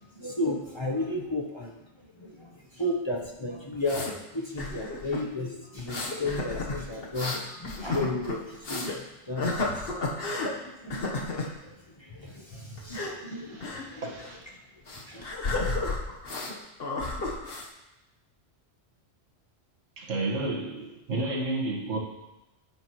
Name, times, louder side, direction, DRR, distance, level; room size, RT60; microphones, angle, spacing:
voice 1, 0.1-1.8 2.2-9.0 9.3-9.9 10.6-14.1 15.1-15.2, left 2 dB, 25° left, -1 dB, 0.8 m, -34 dB
sound 1, 3.2-4.1 4.6-5.2 5.8-9.0 9.4-10.5 10.9-11.5 12.8-13.1 13.6-13.8 14.1-14.3 14.9-16.5 16.8-17.7, left 2 dB, 55° left, 1.3 m, -32 dB
voice 2, 13.3-14.5 20.0-22.0, right 2 dB, 90° right, 0 dB, 1.8 m, -32 dB
10.0 x 8.7 x 3.0 m, 0.97 s
omnidirectional pair, 1.3 m